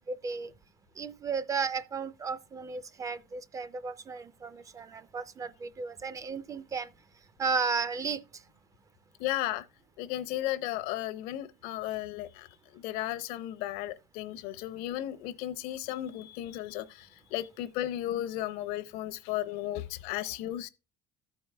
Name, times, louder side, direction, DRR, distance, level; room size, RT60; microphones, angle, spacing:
voice 1, 0.1-0.5 1.0-6.9 7.4-8.2, right 5 dB, 20° right, 0.3 m, -34 dB
voice 2, 9.2-9.6 10.0-12.5 12.7-20.7, left 14 dB, 75° left, 0.7 m, -35 dB
14.0 x 4.7 x 3.2 m
cardioid pair, 160°, 15 cm